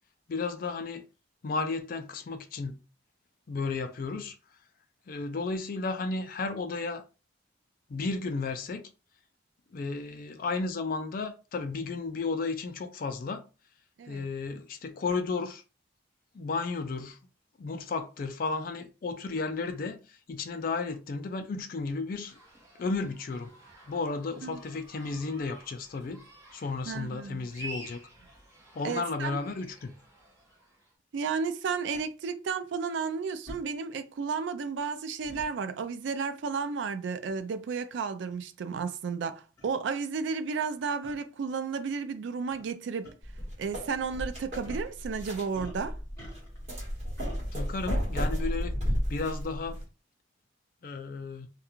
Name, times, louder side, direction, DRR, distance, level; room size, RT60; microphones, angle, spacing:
voice 1, 0.3-1.0 1.4-2.8 3.5-4.4 5.1-7.0 7.9-8.9 9.7-13.4 14.1-15.6 16.3-17.2 17.6-22.4 22.8-23.5 23.9-26.2 26.5-28.0 28.7-29.9 47.5-48.7 49.1-49.8 50.8-51.5, left 4 dB, 45° left, 0.3 m, -33 dB
sound 1, 22.2-30.9, right 2 dB, 15° right, 0.9 m, -50 dB
voice 2, 26.9-27.5 28.8-29.4 31.1-43.1 43.6-46.0, right 5 dB, 75° right, 0.3 m, -33 dB
sound 2, 31.9-32.0 33.5-33.6 35.2-35.5 37.3-37.5 38.3-38.4 39.2-39.3 39.6-39.7 41.0-41.2 42.5-42.7 43.0-43.1 44.6-44.9 45.5-46.7 47.2-47.4, equal, 15° left, 1.2 m, -46 dB
sound 3, 43.2-49.8, equal, 35° right, 1.2 m, -33 dB
2.4 x 2.3 x 2.9 m
head